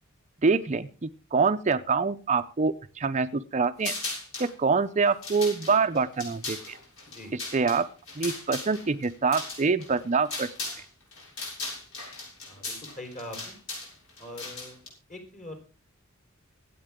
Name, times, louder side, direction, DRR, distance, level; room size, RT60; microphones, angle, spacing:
voice 1, 0.4-3.9 4.4-6.8 7.3-7.9 8.2-10.5, right 4 dB, 35° right, 9 dB, 0.6 m, -25 dB
sound 1, 3.8-4.5 5.1-10.8 11.1-14.9, left 3 dB, 70° left, 6.8 m, -37 dB
voice 2, 12.5-13.5 14.2-14.8 15.1-15.6, left 1 dB, 40° left, 3 dB, 4.4 m, -42 dB
25.0 x 8.6 x 3.7 m, 0.36 s
head